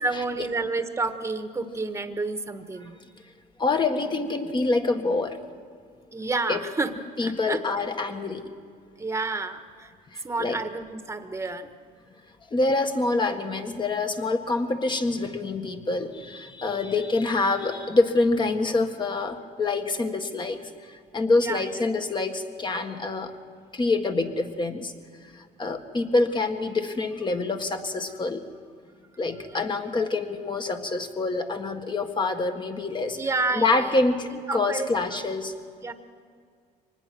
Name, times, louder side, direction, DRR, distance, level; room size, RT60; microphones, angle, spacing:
voice 1, 0.0-3.0 6.1-7.6 9.0-9.9 10.2-11.8 16.7-17.0 21.4-21.7 29.5-29.6 33.2-35.2 35.8-35.9, right 3 dB, 15° right, 8 dB, 1.4 m, -30 dB
voice 2, 3.6-5.4 6.5-6.6 7.2-8.5 10.1-10.6 12.5-23.3 23.7-24.9 25.3-28.4 29.2-33.2 33.5-35.5, left 3 dB, 25° left, 6 dB, 1.7 m, -26 dB
24.5 x 20.0 x 6.2 m, 2.1 s
cardioid pair, 110°, 17 cm